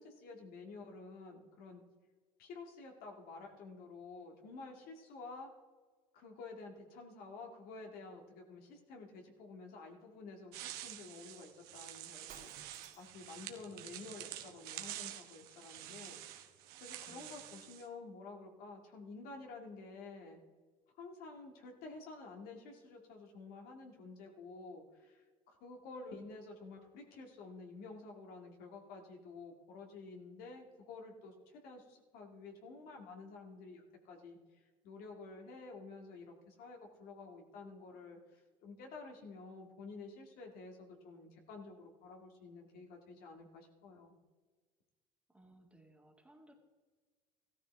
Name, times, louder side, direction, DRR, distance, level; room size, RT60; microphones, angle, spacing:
voice 1, 0.0-1.8 2.4-5.5 6.1-12.5 13.0-16.2 16.8-20.4 21.0-44.1, left 3 dB, 70° left, 2 dB, 2.4 m, -51 dB
sound 1, 10.5-17.9, right 13 dB, 75° right, 1.2 m, -48 dB
Shatter, 12.3-13.3, right 7 dB, 55° right, 2.8 m, -56 dB
voice 2, 17.1-17.6 45.3-46.5, right 1 dB, 5° right, 1 dB, 1.9 m, -62 dB
15.0 x 13.0 x 3.5 m, 1.4 s
supercardioid pair, 100°, 16 cm